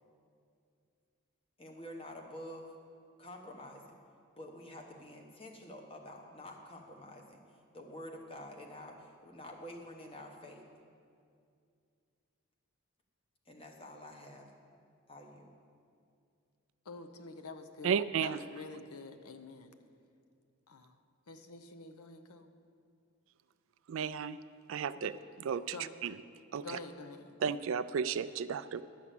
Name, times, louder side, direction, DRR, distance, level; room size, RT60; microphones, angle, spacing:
voice 1, 1.6-2.7 3.2-3.9 4.4-7.4 7.7-10.6 13.5-14.5 15.1-15.6, left 1 dB, 25° left, 2 dB, 1.1 m, -48 dB
voice 2, 16.9-19.7 20.7-20.9 21.3-22.5 24.9-25.1 25.7-25.9 26.6-27.4, left 3 dB, 85° left, 8 dB, 0.7 m, -47 dB
voice 3, 17.8-18.4 23.9-24.4 24.7-25.1 25.5-25.8 26.0-26.2 26.5-26.8 27.4-28.8, right 7 dB, 65° right, 15 dB, 0.3 m, -33 dB
11.5 x 6.0 x 8.4 m, 2.4 s
head